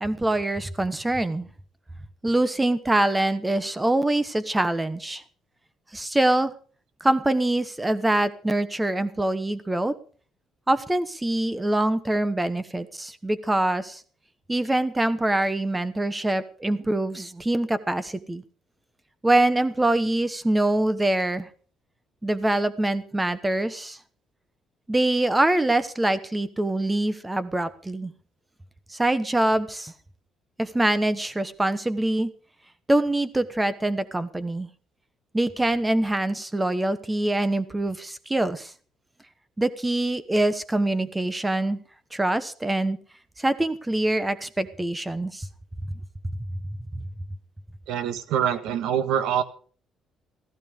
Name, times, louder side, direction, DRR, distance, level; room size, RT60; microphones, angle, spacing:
voice 1, 0.0-1.5 2.2-5.2 5.9-6.5 7.0-9.9 10.7-14.0 14.5-18.4 19.2-21.5 22.2-24.0 24.9-28.1 28.9-29.9 30.6-32.3 32.9-34.7 35.3-38.7 39.6-41.8 42.1-43.0 43.4-45.5 45.8-45.9 46.2-46.5, right 1 dB, 10° right, 14 dB, 1.1 m, -24 dB
voice 2, 47.9-49.4, right 9 dB, 85° right, 12 dB, 1.6 m, -25 dB
15.5 x 15.0 x 5.1 m, 0.43 s
cardioid pair, 170°, 0 cm